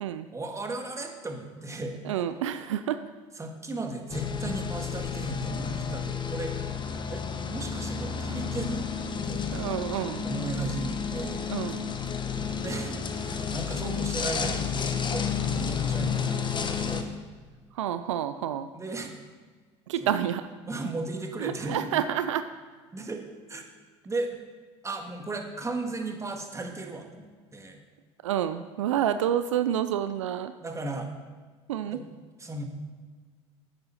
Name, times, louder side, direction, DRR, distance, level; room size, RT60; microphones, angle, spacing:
voice 1, 0.3-2.0 3.3-6.5 7.1-8.8 9.2-9.5 10.2-11.5 12.4-13.0 13.2-16.4 16.8-17.2 18.7-19.1 20.0-20.1 20.6-21.9 22.9-23.6 24.0-24.4 24.8-27.8 30.6-31.1 31.9-32.0 32.4-32.6, right 2 dB, 20° right, 4 dB, 1.7 m, -35 dB
voice 2, 2.1-3.0 9.5-10.3 11.5-11.8 17.8-18.7 19.9-20.4 21.4-22.4 28.2-30.5 31.7-32.0, right 10 dB, 85° right, 11 dB, 0.4 m, -28 dB
sound 1, 4.1-17.0, left 6 dB, 30° left, 1.0 m, -31 dB
9.7 x 8.1 x 5.6 m, 1.5 s
hypercardioid pair, 70°, 16 cm